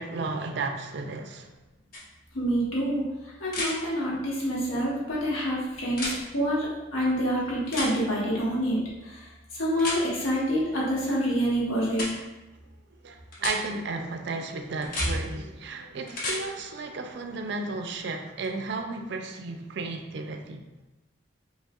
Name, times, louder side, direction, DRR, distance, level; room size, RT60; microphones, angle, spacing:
voice 1, 0.0-1.5 13.0-20.6, right 3 dB, 60° right, 5 dB, 0.4 m, -34 dB
sound 1, 1.9-2.0 3.5-3.7 5.9-6.2 7.7-7.9 9.8-10.0 11.9-12.1 13.3-13.6 14.8-15.1 16.1-16.4 18.4-18.5, left 2 dB, 45° left, 0.8 m, -31 dB
voice 2, 2.3-6.7 6.9-8.8 9.0-12.1, equal, 90° left, -5 dB, 1.2 m, -27 dB
5.2 x 3.2 x 2.4 m, 1.0 s
head